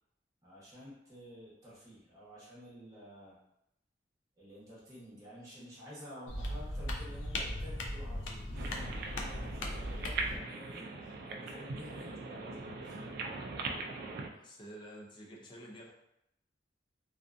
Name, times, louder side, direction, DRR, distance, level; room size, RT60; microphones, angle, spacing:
voice 1, 0.4-3.4 4.4-13.0, equal, 20° right, -8 dB, 0.9 m, -51 dB
patting rock, 6.3-10.4, left 1 dB, 90° left, 0.4 m, -38 dB
sound 1, 8.5-14.3, right 3 dB, 55° right, 0.3 m, -41 dB
voice 2, 14.3-15.9, right 1 dB, 25° left, -3 dB, 0.5 m, -49 dB
2.5 x 2.3 x 2.4 m, 0.82 s
head